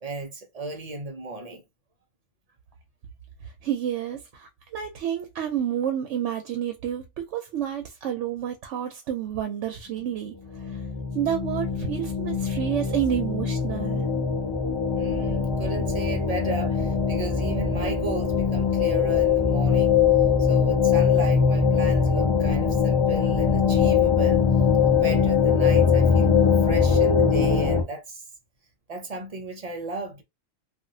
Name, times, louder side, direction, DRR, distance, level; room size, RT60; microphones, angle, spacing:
voice 1, 0.0-1.6 15.0-20.0 20.4-24.4 24.9-28.2 28.9-30.2, right 2 dB, 45° right, 0.5 m, -35 dB
voice 2, 3.4-10.8 11.1-14.1, right 10 dB, 70° right, 0.8 m, -29 dB
sound 1, 10.5-27.8, left 6 dB, 25° left, 0.7 m, -22 dB
2.8 x 2.4 x 2.6 m
omnidirectional pair, 1.3 m